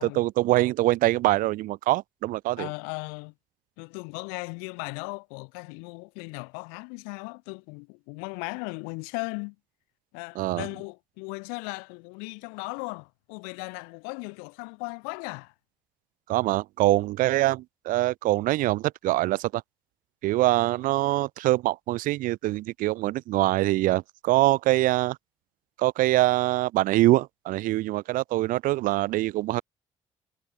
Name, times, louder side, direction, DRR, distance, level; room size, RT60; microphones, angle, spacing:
voice 1, 0.0-2.7 10.4-10.7 16.3-19.6 20.2-25.2 25.8-29.6, right 17 dB, 65° right, 2.1 m, -24 dB
voice 2, 2.6-3.3 3.8-9.6 10.1-15.5, left 39 dB, 75° left, 5.2 m, -37 dB
figure-of-eight pair, 45°, 15 cm